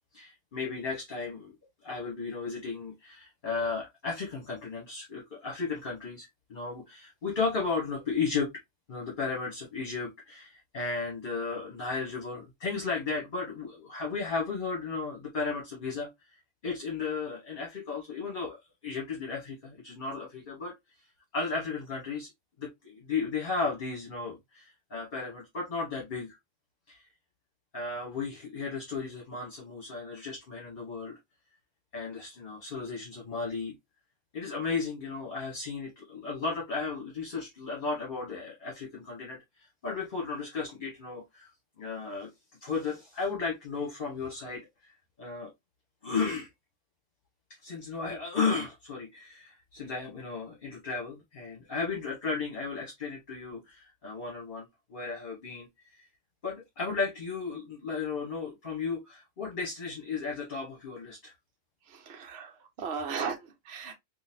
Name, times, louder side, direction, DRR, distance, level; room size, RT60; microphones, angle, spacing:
voice 1, 0.1-1.5 1.8-8.5 8.9-16.1 16.6-20.7 21.3-22.3 22.6-26.4 26.9-27.0 27.7-31.1 31.9-33.7 34.3-39.4 39.8-41.5 41.8-42.3 42.6-44.9 45.2-45.5 46.0-46.5 47.6-55.7 56.4-61.3, left 4 dB, 45° left, 1.2 m, -34 dB
voice 2, 61.9-63.9, right 6 dB, 60° right, 1.0 m, -36 dB
3.8 x 2.6 x 2.6 m
omnidirectional pair, 1.3 m